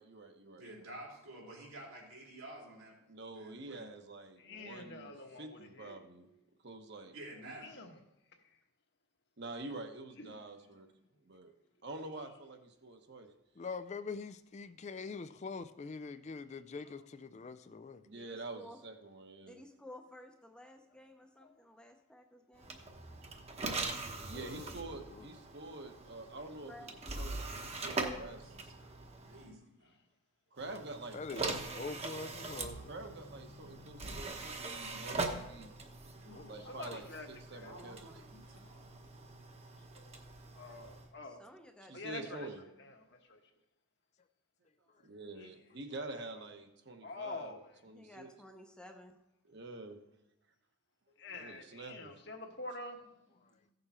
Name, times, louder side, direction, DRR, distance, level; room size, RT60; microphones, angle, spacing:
voice 1, 0.0-0.6 3.1-6.3 6.6-7.1 9.4-10.9 11.2-11.5 11.8-13.3 18.0-19.6 24.2-28.6 30.5-32.0 32.9-35.7 36.5-38.1 41.9-42.6 45.0-47.6 47.8-48.3 49.5-50.0 51.3-52.3, right 2 dB, 55° right, 1.1 m, -47 dB
voice 2, 0.6-3.0 3.3-3.9 7.1-7.7 28.3-28.9 29.2-30.0 32.7-33.3 34.8-35.4 36.2-36.8 37.6-38.9, right 1 dB, 85° right, 3.8 m, -52 dB
voice 3, 4.4-6.0 7.6-8.0 10.2-10.4 21.4-21.6 36.3-37.3 37.5-37.7 40.5-41.4 41.9-43.4 45.4-45.5 46.3-46.4 47.0-47.8 51.2-53.7, left 2 dB, 55° left, 1.3 m, -47 dB
voice 4, 13.6-18.0 24.3-24.7 25.1-25.3 31.1-32.9 36.3-36.6 36.9-37.0, left 4 dB, 35° left, 0.3 m, -44 dB
voice 5, 18.1-18.8 19.4-22.8 26.6-27.0 41.2-42.4 47.9-49.2, left 1 dB, 5° left, 0.7 m, -54 dB
sound 1, 22.6-29.5 30.6-41.1, right 3 dB, 30° right, 1.0 m, -42 dB
15.5 x 6.7 x 4.3 m
head